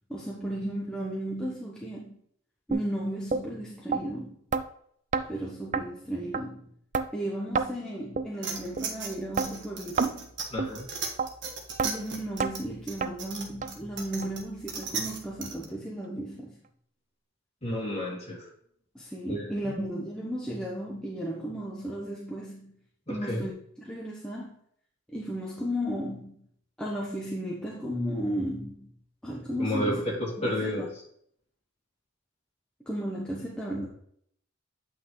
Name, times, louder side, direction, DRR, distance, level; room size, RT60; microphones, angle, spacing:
voice 1, 0.1-2.2 2.7-4.4 5.3-6.7 7.1-10.3 11.8-16.6 18.9-22.7 23.1-23.5 23.8-24.6 25.1-26.5 26.8-28.9 29.2-30.1 30.4-30.9 32.9-33.9, equal, 5° left, -4 dB, 1.0 m, -34 dB
sound 1, 2.7-2.8 3.3-3.4 3.9-4.0 4.5-4.6 5.1-5.3 5.7-5.8 6.3-6.4 6.9-7.1 7.5-7.7 8.2-8.3 8.8-8.9 9.4-9.5 10.0-10.1 10.6-10.7 11.2-11.3 11.8-11.9 12.4-12.5 13.0-13.1 13.6-13.7 14.2-14.3 14.8-14.9 15.4-15.5, right 5 dB, 35° right, 0.4 m, -28 dB
sound 2, 8.4-15.6, right 5 dB, 60° right, 1.4 m, -37 dB
voice 2, 10.5-10.9 17.6-18.5 19.3-19.7 23.1-23.5 29.6-29.9 30.4-30.9, left 1 dB, 30° left, -4 dB, 2.9 m, -31 dB
8.5 x 5.7 x 3.2 m, 0.67 s
head